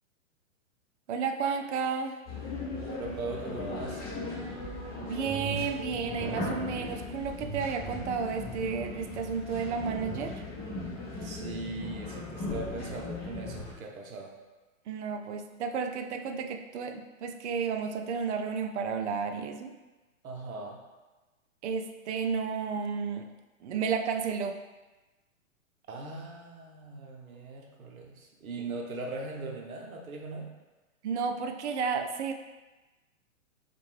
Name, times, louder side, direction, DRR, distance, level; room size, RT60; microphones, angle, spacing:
voice 1, 1.1-2.2 5.0-10.4 14.9-19.7 21.6-23.3 23.6-24.6 31.0-32.3, right 5 dB, 55° right, 6 dB, 0.5 m, -32 dB
sound 1, 2.3-13.7, left 2 dB, 25° left, 1.1 m, -37 dB
voice 2, 2.8-4.0 11.1-14.3 20.2-20.8 25.9-30.6, right 3 dB, 80° right, 1 dB, 0.9 m, -39 dB
4.2 x 2.5 x 3.1 m, 1.2 s
hypercardioid pair, 125°, 41 cm